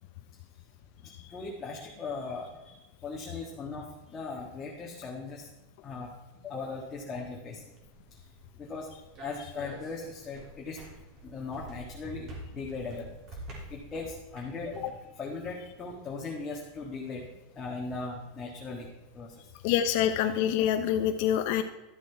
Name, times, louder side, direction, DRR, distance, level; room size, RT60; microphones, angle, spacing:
voice 1, 1.0-5.5 5.8-6.1 6.4-7.6 8.6-8.9 9.2-10.8 11.2-13.1 13.7-14.9 15.2-17.2 17.5-18.9 19.1-19.3, left 4 dB, 20° left, -3 dB, 1.7 m, -38 dB
sound 1, 7.7-14.9, right 2 dB, 40° right, 3.4 m, -47 dB
voice 2, 19.6-21.6, left 10 dB, 60° left, 7 dB, 0.7 m, -26 dB
12.5 x 7.7 x 4.6 m, 1.0 s
supercardioid pair, 140°, 0 cm